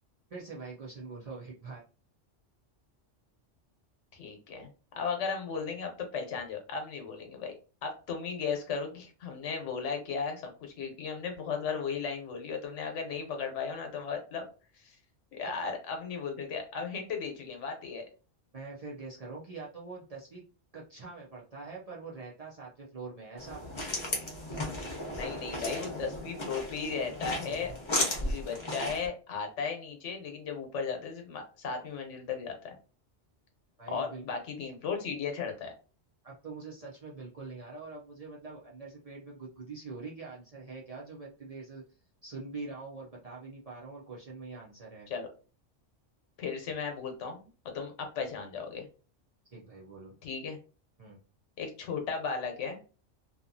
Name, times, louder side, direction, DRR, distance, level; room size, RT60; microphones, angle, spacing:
voice 1, 0.3-1.8 18.5-20.4 20.7-23.6 33.8-34.2 36.2-41.8 42.2-45.1 49.4-50.2 51.0-51.2, right 4 dB, 45° right, -5 dB, 0.5 m, -44 dB
voice 2, 4.1-4.7 5.0-7.5 7.8-14.5 14.7-15.0 15.3-18.0 25.1-32.8 33.9-35.7 45.1-45.3 46.4-48.9 50.2-50.6 51.6-52.8, left 5 dB, 80° left, 4 dB, 1.1 m, -36 dB
sound 1, 23.4-29.1, left 1 dB, 30° left, 0.7 m, -35 dB
2.7 x 2.3 x 2.5 m, 0.36 s
omnidirectional pair, 1.2 m